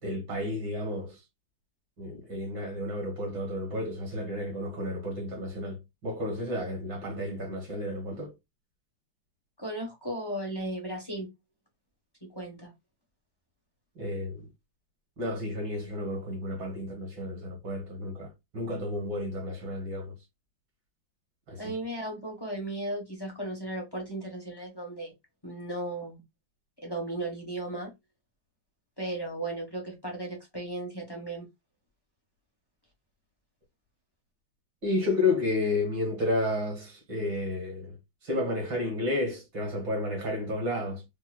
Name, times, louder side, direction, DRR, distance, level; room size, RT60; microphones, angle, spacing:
voice 1, 0.0-1.2 2.0-8.3 14.0-14.5 15.2-20.1 21.5-21.7 34.8-38.0 38.2-41.0, left 2 dB, 70° right, 2.4 m, -31 dB
voice 2, 9.6-11.3 12.2-12.7 21.6-25.1 25.4-26.2 26.8-27.9 29.0-31.5, right 1 dB, 25° left, 0.5 m, -35 dB
4.4 x 2.2 x 2.2 m
omnidirectional pair, 2.1 m